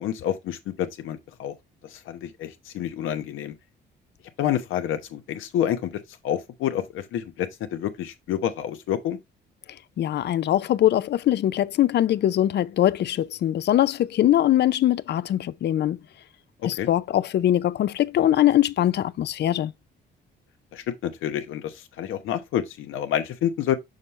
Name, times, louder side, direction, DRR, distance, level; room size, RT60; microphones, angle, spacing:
voice 1, 0.0-1.5 2.1-3.5 4.4-5.9 6.2-9.2 16.8-16.9 20.7-23.8, left 10 dB, 85° left, 1.0 m, -28 dB
voice 2, 10.0-16.0 16.6-19.7, left 12 dB, 60° left, 0.5 m, -22 dB
6.4 x 5.6 x 3.2 m
cardioid pair, 90°, 20 cm